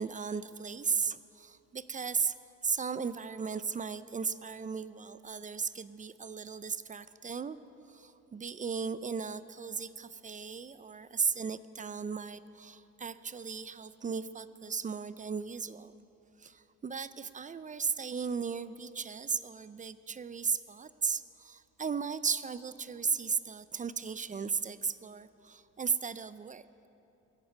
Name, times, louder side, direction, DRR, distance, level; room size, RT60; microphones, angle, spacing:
voice 1, 0.0-2.4 2.6-7.6 7.8-15.9 16.4-26.7, right 5 dB, 25° right, 15 dB, 0.4 m, -36 dB
22.5 x 8.1 x 5.1 m, 2.9 s
cardioid pair, 90°, 30 cm